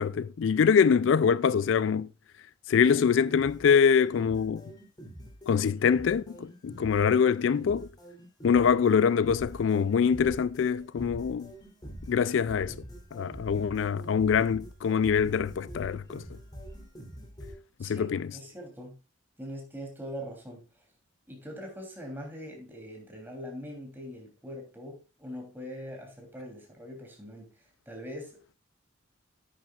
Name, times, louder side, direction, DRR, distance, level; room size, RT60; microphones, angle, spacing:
voice 1, 0.0-2.1 2.7-4.6 5.5-7.9 8.4-11.5 12.1-12.7 13.1-16.2 17.8-18.3, left 6 dB, 75° left, 0.4 m, -24 dB
sound 1, 2.8-17.5, equal, 20° left, 3.1 m, -45 dB
voice 2, 17.8-19.0 19.4-20.8 21.3-27.5 27.9-28.6, equal, 10° right, 3.1 m, -42 dB
10.5 x 9.0 x 2.4 m
head